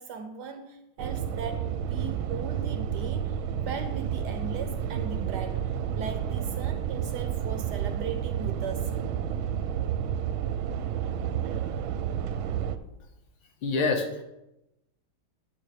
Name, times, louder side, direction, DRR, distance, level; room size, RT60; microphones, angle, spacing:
voice 1, 0.0-3.4 3.7-8.9, right 6 dB, 65° right, 6 dB, 1.2 m, -38 dB
sound 1, 1.0-12.8, right 9 dB, 80° right, 1.4 m, -30 dB
voice 2, 13.6-14.2, left 4 dB, 85° left, 4 dB, 2.0 m, -26 dB
9.1 x 8.9 x 3.3 m, 0.92 s
omnidirectional pair, 2.3 m